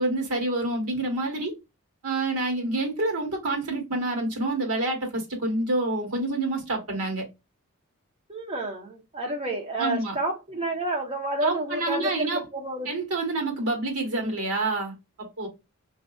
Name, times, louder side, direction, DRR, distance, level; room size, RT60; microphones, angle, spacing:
voice 1, 0.0-1.5 2.0-7.2 9.8-10.1 11.4-12.4 12.9-15.5, right 2 dB, 80° right, 1.4 m, -28 dB
voice 2, 8.3-12.9, right 2 dB, 25° right, 1.0 m, -30 dB
4.8 x 2.6 x 2.3 m
head